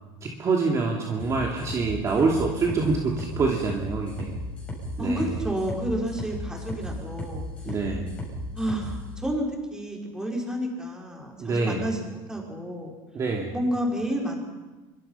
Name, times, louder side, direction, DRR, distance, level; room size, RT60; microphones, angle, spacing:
voice 1, 0.2-4.3 5.0-5.3 7.6-8.1 11.4-11.8 13.1-13.5, right 4 dB, 30° right, 0 dB, 2.8 m, -26 dB
sound 1, 1.2-9.0, left 1 dB, 10° left, 7.8 m, -35 dB
voice 2, 5.0-7.5 8.6-12.9 13.5-14.4, equal, 5° right, 0 dB, 5.4 m, -30 dB
25.5 x 24.5 x 5.8 m, 1.2 s
cardioid pair, 150°, 11 cm